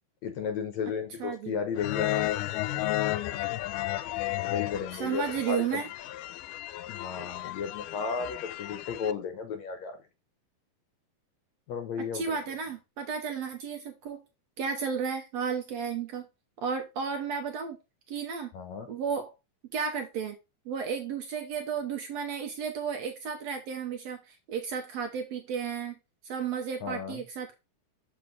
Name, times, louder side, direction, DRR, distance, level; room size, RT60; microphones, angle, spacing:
voice 1, 0.2-2.3 4.3-5.8 6.9-10.0 11.7-12.4 18.5-18.9 26.8-27.2, left 6 dB, 65° left, 2.0 m, -34 dB
voice 2, 1.2-1.6 5.0-5.9 12.1-14.2 14.6-16.3 16.6-17.8 18.1-18.5 18.9-19.3 19.7-20.4 20.6-26.0 26.2-27.5, right 6 dB, 70° right, 1.8 m, -33 dB
sound 1, 1.8-9.1, left 16 dB, 80° left, 2.1 m, -33 dB
6.7 x 5.2 x 3.9 m
omnidirectional pair, 3.8 m